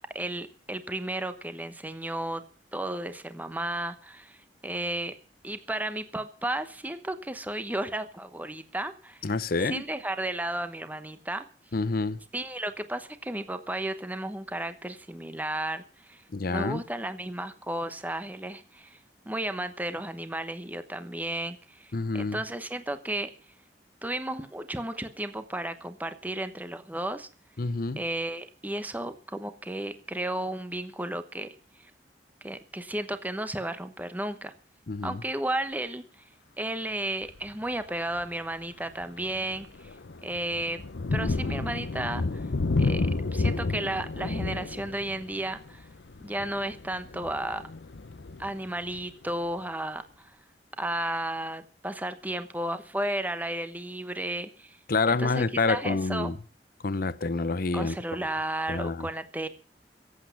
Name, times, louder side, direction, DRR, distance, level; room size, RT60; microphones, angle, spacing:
voice 1, 0.1-2.4 2.7-5.1 5.4-9.3 9.6-11.5 12.3-16.2 16.5-19.0 19.2-23.3 24.0-27.3 28.0-31.5 31.8-31.9 32.4-34.5 35.0-36.0 36.6-39.9 40.2-40.8 41.1-42.5 42.8-45.9 46.2-47.6 48.4-50.3 50.8-54.8 55.1-56.3 57.7-59.5, right 1 dB, 10° right, 1.0 m, -33 dB
voice 2, 9.2-9.8 11.7-12.2 16.3-16.8 21.9-22.4 27.6-28.0 34.9-35.2 54.9-56.4 56.8-57.9 58.7-59.1, left 3 dB, 55° left, 0.7 m, -27 dB
Thunder, 37.2-37.6 38.1-38.3 38.7-49.3, left 3 dB, 90° left, 0.7 m, -31 dB
17.5 x 8.4 x 7.0 m
head